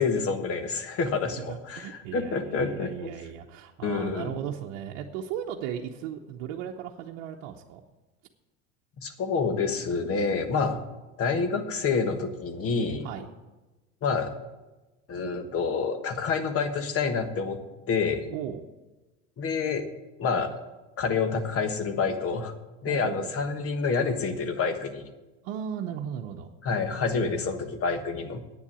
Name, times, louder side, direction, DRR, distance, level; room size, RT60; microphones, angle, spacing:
voice 1, 0.0-3.1 3.8-4.4 9.0-10.8 11.2-13.1 14.0-14.3 15.1-17.6 17.9-18.3 19.4-19.8 20.2-20.6 21.0-22.5 22.8-25.1 26.6-28.4, left 5 dB, 40° left, 8 dB, 1.4 m, -28 dB
voice 2, 1.0-7.8 13.0-13.3 18.3-18.6 22.8-23.5 25.4-26.5, right 9 dB, 60° right, 1 dB, 0.9 m, -36 dB
9.4 x 7.2 x 8.4 m, 1.1 s
hypercardioid pair, 95°, 37 cm